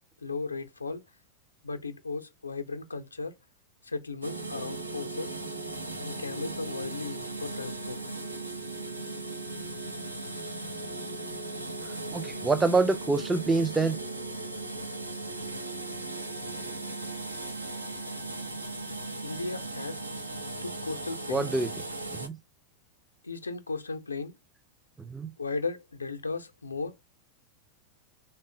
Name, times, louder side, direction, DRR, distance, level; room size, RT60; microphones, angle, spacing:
voice 1, 0.2-1.0 1.6-3.3 3.8-5.3 6.0-8.0 19.2-20.0 20.6-21.5 23.2-24.3 25.4-27.0, left 3 dB, 80° left, 0.5 m, -36 dB
sound 1, 4.2-22.3, right 2 dB, 85° right, 0.5 m, -37 dB
voice 2, 11.8-14.0 21.3-21.7 22.1-22.4 25.0-25.3, right 3 dB, 10° right, 0.4 m, -26 dB
3.6 x 2.1 x 3.9 m
figure-of-eight pair, 90°, 0 cm